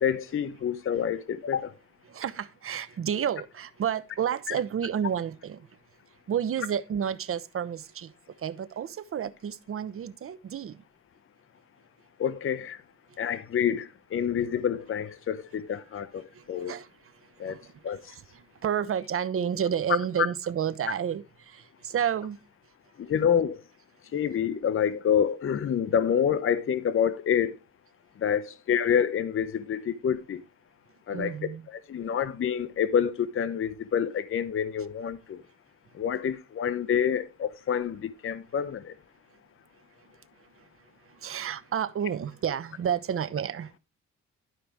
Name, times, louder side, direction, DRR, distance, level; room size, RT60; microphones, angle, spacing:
voice 1, 0.0-1.7 4.5-4.6 12.2-12.8 13.2-16.8 17.4-17.6 17.8-18.0 20.2-20.3 23.0-23.6 24.1-27.6 28.2-30.4 31.1-31.4 31.7-35.4 35.9-38.9, left 8 dB, 45° left, 0.8 m, -27 dB
voice 2, 2.1-5.7 6.3-8.1 8.4-10.8 16.4-16.9 17.5-17.7 18.6-21.2 21.5-22.4 31.1-31.6 41.2-43.7, right 8 dB, 45° right, 0.9 m, -30 dB
12.0 x 5.0 x 4.7 m
cardioid pair, 90°, 30 cm